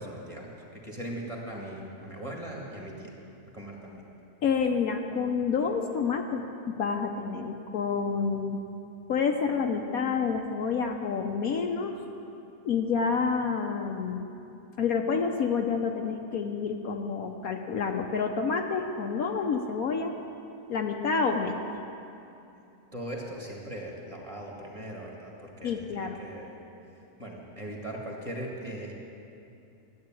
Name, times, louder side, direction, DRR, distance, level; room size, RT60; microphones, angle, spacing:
voice 1, 0.0-3.1 3.5-4.0 22.9-26.6 27.2-28.9, right 1 dB, 20° right, -2 dB, 2.1 m, -39 dB
voice 2, 4.4-6.4 6.8-8.6 9.1-12.0 12.6-14.3 14.8-20.2 20.7-21.6 25.6-26.2, left 5 dB, 65° left, 3 dB, 1.2 m, -28 dB
13.0 x 8.6 x 9.0 m, 2.7 s
omnidirectional pair, 1.7 m